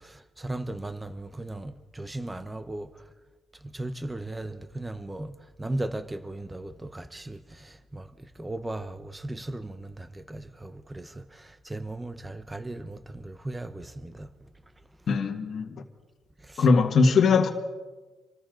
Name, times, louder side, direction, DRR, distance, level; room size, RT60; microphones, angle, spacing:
voice 1, 0.0-3.0 3.6-5.3 5.6-14.3 16.4-16.7, right 1 dB, 15° right, 1.0 m, -37 dB
voice 2, 15.1-15.7 16.6-17.5, left 4 dB, 55° left, 1.8 m, -20 dB
27.0 x 14.0 x 3.9 m
cardioid pair, 90°, 0 cm